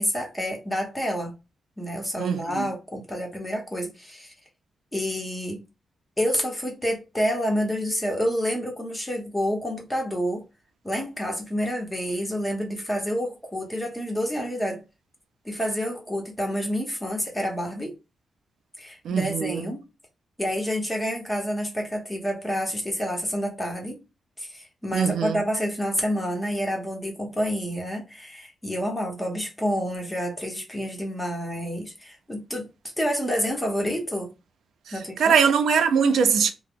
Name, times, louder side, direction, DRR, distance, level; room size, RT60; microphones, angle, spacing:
voice 1, 0.0-1.3 1.8-4.3 4.9-5.6 6.2-10.4 10.8-14.8 15.4-18.0 18.8-19.8 20.4-24.0 24.4-32.7 33.0-34.3 34.9-35.3, equal, 10° left, 0.8 m, -28 dB
voice 2, 2.2-2.7 19.0-19.7 24.9-25.4 35.2-36.5, right 6 dB, 85° right, 0.4 m, -22 dB
2.9 x 2.0 x 3.5 m
wide cardioid pair, 170°, 0 cm